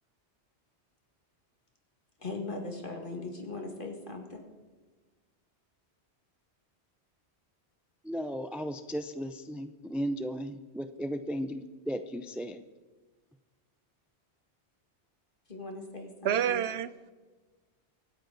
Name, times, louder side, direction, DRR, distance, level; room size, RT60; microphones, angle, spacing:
voice 1, 2.2-4.4 15.5-16.6, left 3 dB, 50° left, 3 dB, 2.2 m, -39 dB
voice 2, 8.0-12.6, equal, ahead, 9 dB, 0.3 m, -35 dB
voice 3, 16.2-17.1, right 9 dB, 75° right, 16 dB, 0.8 m, -29 dB
24.5 x 9.1 x 4.0 m, 1.3 s
omnidirectional pair, 1.1 m